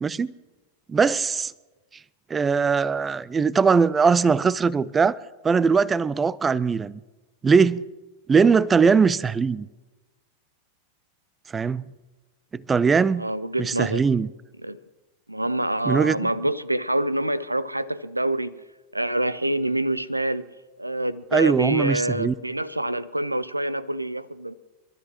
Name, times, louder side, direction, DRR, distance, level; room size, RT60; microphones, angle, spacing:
voice 1, 0.0-0.3 0.9-1.5 2.3-5.2 5.4-7.0 7.4-7.9 8.3-9.7 11.5-11.8 12.5-13.3 13.6-14.3 15.9-16.3 21.3-22.3, right 5 dB, 15° right, 0.4 m, -20 dB
voice 2, 13.2-14.0 14.6-14.8 15.3-18.6 18.9-20.5 20.8-24.5, right 1 dB, 85° right, 0.5 m, -26 dB
28.0 x 12.5 x 3.0 m
figure-of-eight pair, 90°, 0 cm